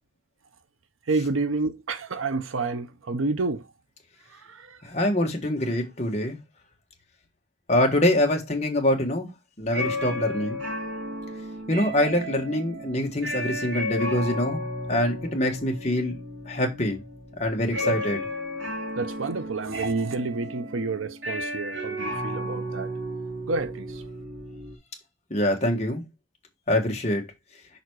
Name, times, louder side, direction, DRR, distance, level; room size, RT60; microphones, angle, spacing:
voice 1, 1.1-3.6 4.5-4.8 17.8-18.0 19.0-22.9 23.5-23.9, right 3 dB, 80° right, 0.7 m, -29 dB
voice 2, 4.8-6.4 7.7-9.3 9.6-10.6 11.7-14.6 14.9-16.1 16.4-17.0 17.4-18.2 25.3-26.0 26.7-27.2, left 1 dB, 35° left, 1.5 m, -24 dB
sound 1, 9.6-24.8, left 1 dB, 65° right, 1.9 m, -33 dB
5.9 x 4.1 x 4.6 m
head